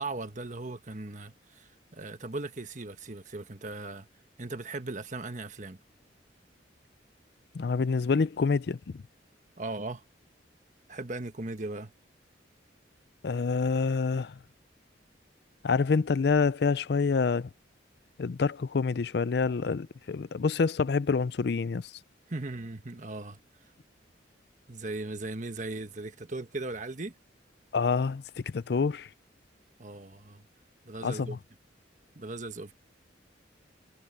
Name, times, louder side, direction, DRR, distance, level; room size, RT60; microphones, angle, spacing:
voice 1, 0.0-4.1 4.4-5.8 9.6-10.0 10.9-11.9 22.3-23.4 24.7-27.1 29.8-30.5 30.8-31.4 32.1-32.7, right 2 dB, 40° right, 1.3 m, -38 dB
voice 2, 7.5-8.8 13.2-14.3 15.6-17.5 18.2-21.9 27.7-28.2 28.5-29.1 31.0-31.4, left 5 dB, 60° left, 0.4 m, -27 dB
head